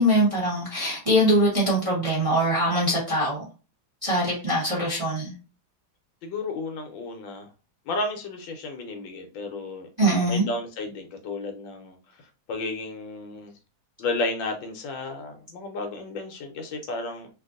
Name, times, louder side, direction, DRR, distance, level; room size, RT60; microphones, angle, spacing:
voice 1, 0.0-3.4 4.0-5.3 10.0-10.5, equal, 25° right, 0.7 m, -22 dB
voice 2, 6.2-7.5 7.9-9.9 10.3-12.0 12.5-13.5 14.0-17.3, left 2 dB, 75° left, 1.4 m, -32 dB
3.3 x 2.5 x 2.4 m
omnidirectional pair, 2.2 m